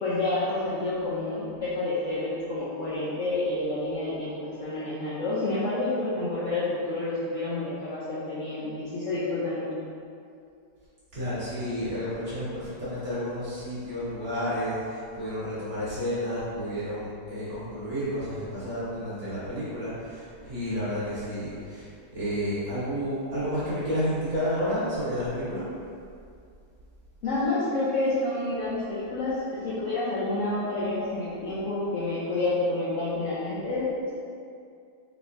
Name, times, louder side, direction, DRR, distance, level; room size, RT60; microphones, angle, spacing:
voice 1, 0.0-4.3 4.6-9.7 27.2-29.3 29.6-34.1, left 2 dB, 65° left, -10 dB, 0.8 m, -29 dB
voice 2, 11.1-21.9 22.1-25.6, equal, 45° right, -11 dB, 1.5 m, -31 dB
4.0 x 3.4 x 2.5 m, 2.4 s
omnidirectional pair, 1.9 m